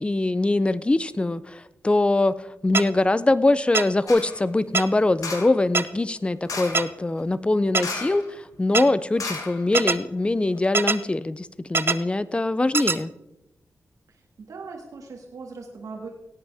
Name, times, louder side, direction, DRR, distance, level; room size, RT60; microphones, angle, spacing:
voice 1, 0.0-2.3 2.6-13.1, left 2 dB, 20° left, 16 dB, 0.5 m, -23 dB
sound 1, 2.7-2.8 3.7-3.8 4.7-4.8 5.7-5.8 6.7-6.8 7.7-7.8 8.7-8.8 9.7-9.9 10.7-11.0 11.7-11.9 12.7-13.0, right 4 dB, 45° right, 0.6 m, -21 dB
sound 2, 4.1-4.4 5.2-5.6 6.4-6.9 7.8-8.3 8.5-8.6 9.2-10.0 10.5-10.6, left 4 dB, 80° left, 1.7 m, -34 dB
voice 2, 14.1-16.1, right 4 dB, 80° right, 0 dB, 1.8 m, -40 dB
17.5 x 8.8 x 3.5 m, 0.91 s
cardioid pair, 75°, 6 cm